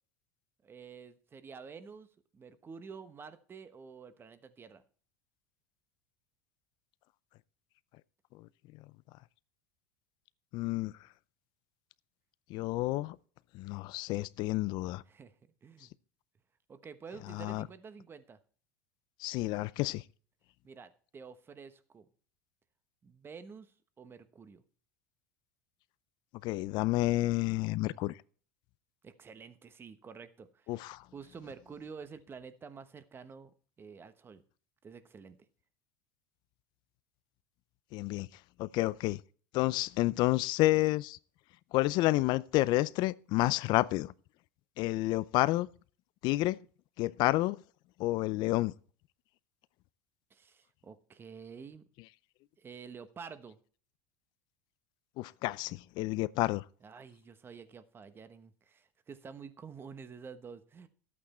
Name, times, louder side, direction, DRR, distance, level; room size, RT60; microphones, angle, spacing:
voice 1, 0.6-2.1 2.3-4.8 15.1-15.3 15.6-15.9 16.7-18.4 20.6-22.1 23.0-24.6 29.0-30.7 31.1-34.4 34.8-35.4 50.3-51.8 52.6-53.6 56.8-60.9, right 5 dB, 25° right, 1.1 m, -49 dB
voice 2, 10.5-10.9 12.5-13.2 13.5-15.0 17.3-17.6 19.2-20.0 26.4-28.1 30.7-31.0 37.9-38.3 38.6-39.2 39.5-41.2 41.7-44.1 44.8-45.7 46.2-46.6 47.0-47.6 48.0-48.7 55.2-56.6, left 18 dB, 55° left, 0.5 m, -30 dB
12.5 x 8.6 x 4.3 m
supercardioid pair, 105°, 9 cm